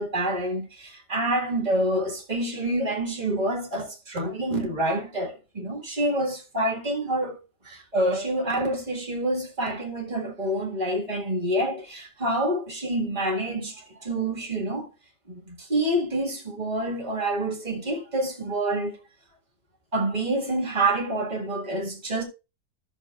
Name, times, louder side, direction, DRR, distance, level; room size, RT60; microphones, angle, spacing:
voice 1, 0.0-7.4 7.7-14.9 15.3-19.0 19.9-22.2, right 1 dB, 25° right, 1.9 m, -27 dB
14.0 x 6.4 x 2.4 m
omnidirectional pair, 1.6 m